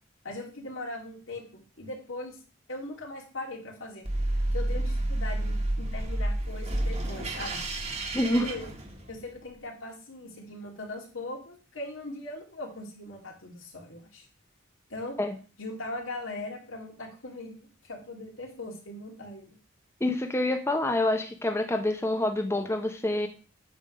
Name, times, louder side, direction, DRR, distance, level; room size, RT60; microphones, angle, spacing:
voice 1, 0.2-2.4 2.7-4.1 4.5-7.6 8.2-8.7 9.1-14.2 14.9-15.2 15.6-19.6, left 2 dB, 85° left, 0 dB, 2.3 m, -40 dB
sound 1, 4.0-9.3, right 1 dB, 35° right, 1.3 m, -30 dB
voice 2, 8.1-8.5 15.2-15.3 20.0-23.3, left 1 dB, 15° left, 5 dB, 0.7 m, -27 dB
9.1 x 3.3 x 6.5 m, 0.36 s
head